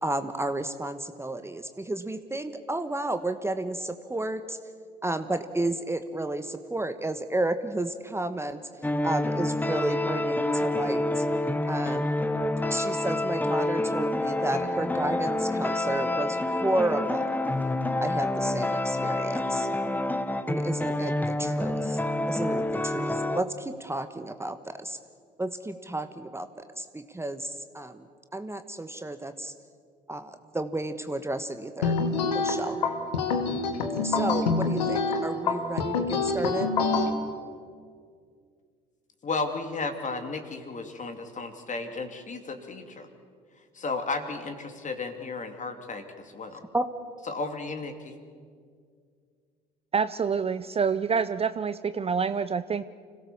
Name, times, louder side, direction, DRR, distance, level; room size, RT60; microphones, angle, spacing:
voice 1, 0.0-4.6 5.0-8.6 9.0-11.2 11.7-12.2 12.7-17.2 18.0-19.7 20.5-22.0 22.3-25.0 25.4-28.1 28.3-29.5 30.1-32.0 32.3-32.8 34.0-36.7 46.7-46.9, right 2 dB, 10° right, 9 dB, 1.2 m, -32 dB
sound 1, 8.8-23.4, left 1 dB, 10° left, 1.1 m, -28 dB
sound 2, 31.8-37.1, left 4 dB, 90° left, 1.5 m, -26 dB
voice 2, 39.2-43.1 43.7-46.6 47.3-48.1, left 3 dB, 35° left, 6 dB, 2.9 m, -34 dB
voice 3, 49.9-52.8, right 6 dB, 30° right, 13 dB, 0.6 m, -27 dB
26.0 x 17.0 x 7.2 m, 2.1 s
hypercardioid pair, 60°, 21 cm